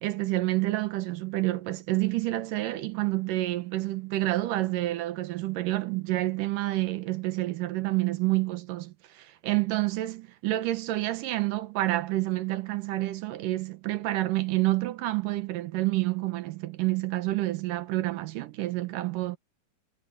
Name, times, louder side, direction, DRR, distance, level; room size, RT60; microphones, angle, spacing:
voice 1, 0.0-19.4, right 17 dB, 75° right, 2.5 m, -28 dB
omnidirectional pair, 4.1 m